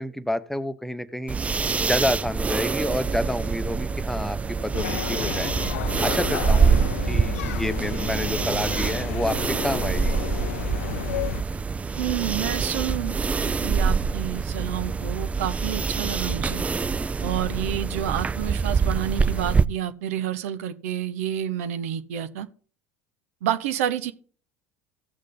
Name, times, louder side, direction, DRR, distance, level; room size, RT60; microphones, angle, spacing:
voice 1, 0.0-1.4 1.8-5.5 6.0-10.2, left 1 dB, 5° left, 0.9 m, -29 dB
sound 1, 1.3-19.6, right 5 dB, 15° right, 0.4 m, -25 dB
sound 2, 2.2-5.7, right 8 dB, 45° right, 1.2 m, -41 dB
sound 3, 4.7-11.4, left 12 dB, 80° left, 0.4 m, -32 dB
voice 2, 12.0-13.2 13.4-16.6 17.2-22.5 23.4-24.1, right 10 dB, 75° right, 0.9 m, -29 dB
16.0 x 6.5 x 3.8 m
hypercardioid pair, 80°, 8 cm